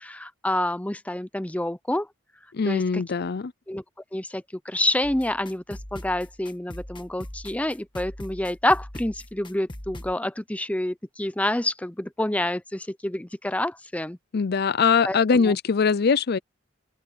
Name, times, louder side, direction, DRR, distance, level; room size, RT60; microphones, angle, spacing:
voice 1, 0.0-2.1 2.7-3.0 3.7-3.8 4.1-14.2 15.0-15.6, left 1 dB, 5° left, 0.6 m, -28 dB
voice 2, 2.5-3.5 14.3-16.4, left 5 dB, 55° left, 0.5 m, -22 dB
sound 1, 5.0-10.1, left 1 dB, 25° left, 1.4 m, -41 dB
head